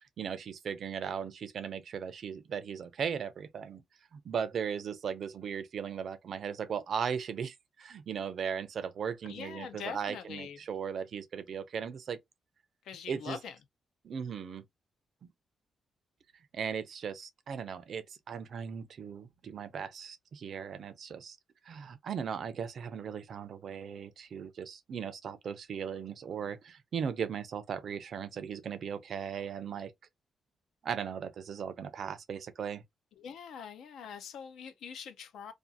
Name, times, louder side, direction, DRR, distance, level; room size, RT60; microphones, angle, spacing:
voice 1, 0.2-3.8 4.1-12.2 13.1-13.4 14.0-14.6 16.5-21.4 21.7-29.9 30.8-32.8, right 7 dB, 45° right, 0.4 m, -37 dB
voice 2, 9.2-10.6 12.8-13.6 33.2-35.5, left 7 dB, 75° left, 0.5 m, -43 dB
2.5 x 2.4 x 2.6 m
wide cardioid pair, 175°, 0 cm